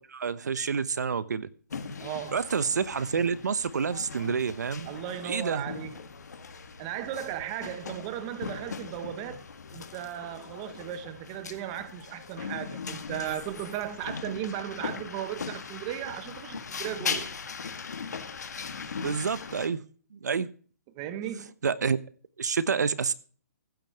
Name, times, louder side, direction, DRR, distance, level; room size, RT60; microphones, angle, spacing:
voice 1, 0.1-1.5 2.3-4.9 5.2-5.6 19.0-19.8 20.1-20.5 21.6-22.0 22.4-23.1, right 6 dB, 80° right, 1.0 m, -28 dB
sound 1, 1.7-19.7, left 5 dB, 80° left, 1.8 m, -39 dB
voice 2, 2.0-2.4 4.8-6.1 6.8-9.4 9.7-17.3 20.9-21.5, right 11 dB, 20° right, 1.0 m, -36 dB
15.0 x 5.2 x 7.8 m
hypercardioid pair, 170°, 9 cm